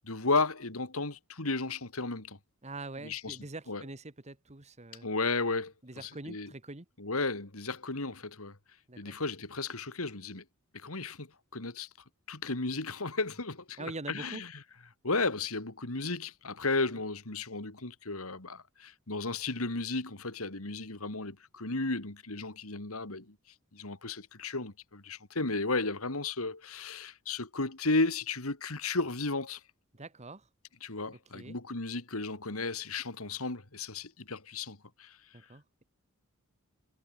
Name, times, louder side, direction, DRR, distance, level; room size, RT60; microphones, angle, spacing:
voice 1, 0.0-2.4 3.0-3.4 3.7-3.8 5.0-6.5 7.0-8.6 9.0-10.4 10.7-11.3 11.5-11.9 12.3-14.5 15.0-23.3 23.7-29.6 30.8-35.2, left 3 dB, 80° left, 2.8 m, -34 dB
voice 2, 2.6-5.1 5.8-6.9 8.9-9.2 13.8-14.4 29.9-30.5 31.3-31.6 35.3-35.8, right 2 dB, 30° right, 1.7 m, -44 dB
head